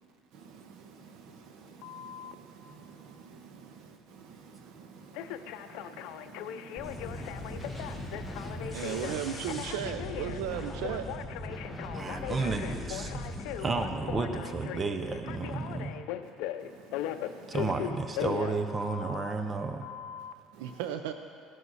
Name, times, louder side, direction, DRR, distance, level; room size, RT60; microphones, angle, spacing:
voice 1, 0.3-9.2 12.0-12.3 13.1-13.4 16.2-17.7 20.2-20.9, right 5 dB, 65° right, 5 dB, 1.3 m, -52 dB
Telephone, 1.8-2.3 5.1-19.3 19.8-20.3, left 11 dB, 75° left, 0.6 m, -39 dB
sound 1, 6.8-14.4, left 1 dB, ahead, 1.5 m, -39 dB
voice 2, 8.7-11.1 20.6-21.1, right 10 dB, 85° right, 8 dB, 0.5 m, -34 dB
voice 3, 11.9-13.1 13.6-16.0 17.5-19.9, right 4 dB, 25° right, 7 dB, 0.8 m, -32 dB
16.0 x 11.5 x 4.2 m, 2.4 s
cardioid pair, 120°, 0 cm